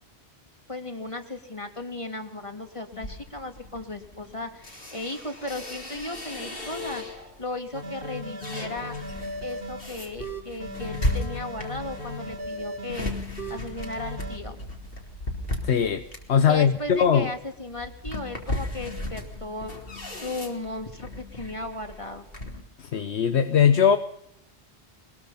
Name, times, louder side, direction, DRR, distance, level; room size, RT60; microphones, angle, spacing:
voice 1, 0.7-9.0 9.4-14.6 16.5-19.7 20.1-22.3, left 2 dB, 30° left, 5 dB, 2.7 m, -36 dB
sound 1, 2.9-7.4 7.9-22.6, left 1 dB, 60° left, 4.0 m, -36 dB
sound 2, 7.7-9.8 10.2-13.0 13.4-14.4, equal, 55° right, 4.5 m, -36 dB
voice 2, 15.6-17.3 22.8-24.0, left 7 dB, 80° left, 10 dB, 1.3 m, -21 dB
23.5 x 21.5 x 5.7 m, 0.77 s
omnidirectional pair, 1.1 m